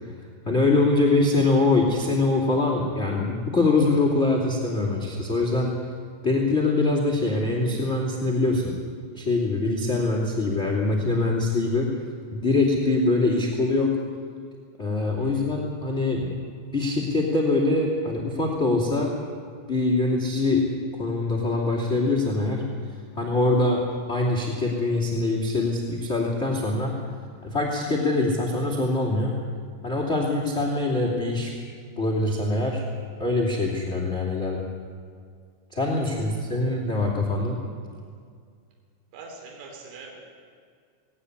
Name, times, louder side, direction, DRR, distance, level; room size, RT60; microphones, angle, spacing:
voice 1, 0.4-5.7 6.2-8.7 9.1-11.9 12.3-13.9 14.8-16.3 16.7-19.1 19.7-20.6 20.9-22.6 23.2-23.8 24.1-26.9 27.4-29.3 29.8-31.5 32.0-32.8 33.2-34.7 35.7-37.6, left 2 dB, 20° left, -1 dB, 1.8 m, -23 dB
voice 2, 39.1-40.2, right 4 dB, 55° right, -1 dB, 5.5 m, -44 dB
18.5 x 17.5 x 9.8 m, 2.1 s
omnidirectional pair, 5.8 m